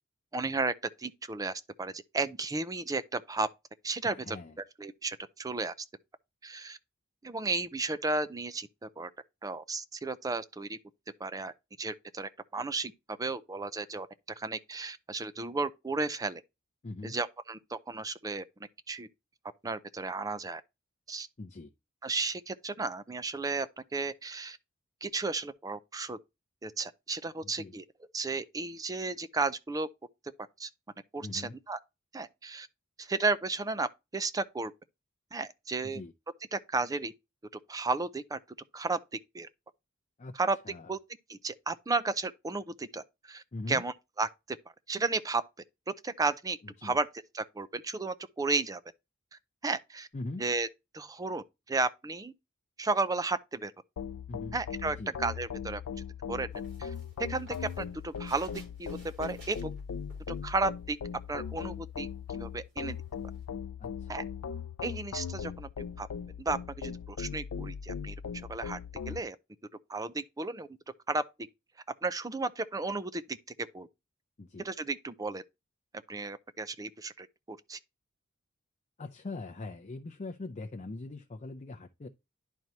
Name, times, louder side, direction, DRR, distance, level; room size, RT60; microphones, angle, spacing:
voice 1, 0.3-1.5 1.8-3.5 3.8-4.4 4.8-5.7 6.4-6.8 7.2-9.1 9.4-10.8 11.2-12.9 13.2-14.1 14.4-16.4 17.0-18.4 18.9-19.1 19.6-20.6 21.1-21.3 22.0-23.7 23.9-24.6 25.0-26.2 26.6-27.8 28.1-29.9 30.6-30.7 31.1-31.8 32.1-32.7 33.0-33.9 34.1-34.7 35.3-36.0 36.5-37.1 37.7-38.4 38.7-39.0 39.3-39.5 40.4-40.6 40.9-41.0 41.3-44.3 44.9-45.4 45.9-47.1 47.3-48.8 49.6-50.1 50.4-50.7 50.9-52.3 52.8-53.7 54.5-55.8 56.3-56.5 56.8-56.9 57.2-58.5 58.8-59.7 60.4-61.0 61.3-63.0 64.1-64.2 64.8-65.7 66.0-66.1 66.4-68.2 68.5-68.8 69.0-69.4 69.9-70.7 71.1-71.5 72.0-73.4 73.7-73.9 74.6-75.4 76.1-77.8, right 3 dB, 15° right, 0.4 m, -33 dB
voice 2, 4.0-4.6 16.8-17.2 21.4-21.7 27.4-27.7 31.2-31.6 35.8-36.1 40.2-40.3 40.6-40.9 43.5-43.8 46.6-47.0 50.1-50.4 54.3-54.6 54.9-55.1 63.8-64.3 74.4-74.7 79.0-82.1, left 2 dB, 35° left, 0.5 m, -42 dB
sound 1, 54.0-69.2, left 7 dB, 85° left, 0.4 m, -39 dB
sound 2, 56.5-60.7 61.1-63.4, right 1 dB, 55° right, 3.3 m, -57 dB
10.5 x 4.5 x 2.8 m
head